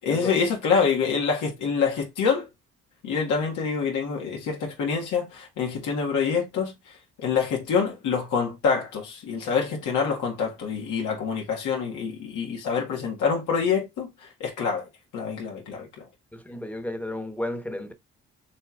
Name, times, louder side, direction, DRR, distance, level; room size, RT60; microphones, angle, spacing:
voice 1, 0.0-2.5 3.0-6.7 7.2-14.9 15.1-16.1, left 6 dB, 85° left, 1.8 m, -26 dB
voice 2, 16.3-17.9, left 1 dB, 5° left, 1.1 m, -33 dB
6.2 x 3.0 x 2.4 m
cardioid pair, 90°, 30 cm